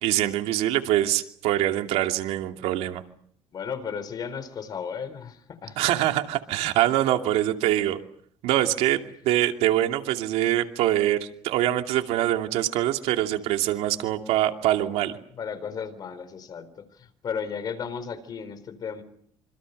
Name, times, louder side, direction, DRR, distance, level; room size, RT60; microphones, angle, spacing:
voice 1, 0.0-3.0 5.8-8.0 8.4-15.2, right 13 dB, 80° right, 6 dB, 2.6 m, -24 dB
voice 2, 3.5-5.8 15.3-19.0, left 6 dB, 40° left, 12 dB, 4.1 m, -34 dB
26.5 x 26.5 x 6.7 m, 0.64 s
cardioid pair, 130°, 10 cm